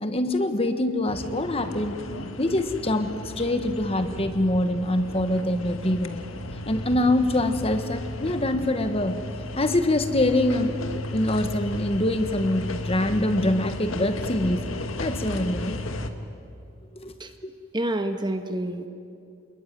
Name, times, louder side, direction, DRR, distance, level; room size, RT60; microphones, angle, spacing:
voice 1, 0.0-2.0 2.4-6.2 6.6-9.3 9.5-10.8 11.1-14.6 15.0-15.8 17.0-17.1, left 1 dB, 30° left, 8 dB, 1.4 m, -24 dB
sound 1, 1.1-16.1, left 1 dB, 85° left, 1.7 m, -34 dB
voice 2, 17.7-18.9, right 1 dB, 20° right, 7 dB, 1.3 m, -28 dB
27.5 x 21.0 x 9.5 m, 2.4 s
head